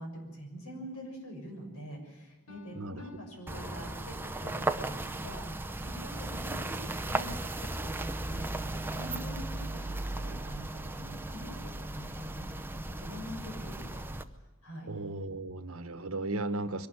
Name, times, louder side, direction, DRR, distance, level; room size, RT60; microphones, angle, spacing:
voice 1, 0.0-7.5 7.8-14.0 14.6-14.9, equal, 85° left, 1 dB, 6.7 m, -45 dB
Piano, 2.5-4.9, left 2 dB, 70° left, 2.5 m, -55 dB
sound 1, 3.5-14.2, right 2 dB, 10° right, 0.6 m, -36 dB
voice 2, 14.9-16.9, right 2 dB, 75° right, 11 dB, 1.3 m, -35 dB
23.5 x 12.0 x 9.9 m, 1.2 s
head